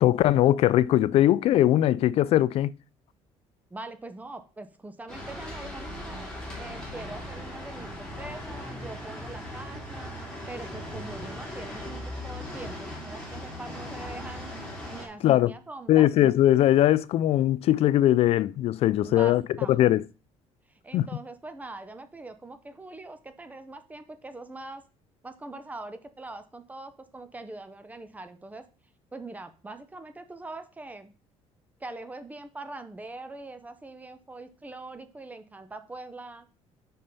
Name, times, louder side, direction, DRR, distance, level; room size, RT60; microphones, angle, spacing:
voice 1, 0.0-2.7 15.2-15.5 15.9-19.4 19.7-20.0 20.9-21.1, left 13 dB, 60° left, 0.4 m, -20 dB
voice 2, 3.7-6.2 6.5-10.1 10.5-14.5 14.9-16.0 19.0-19.8 20.7-24.8 25.2-28.7 29.1-31.1 31.8-36.5, right 2 dB, 15° right, 0.8 m, -42 dB
sound 1, 5.1-15.1, left 1 dB, 5° left, 3.0 m, -38 dB
5.6 x 5.5 x 5.4 m
cardioid pair, 130°, 12 cm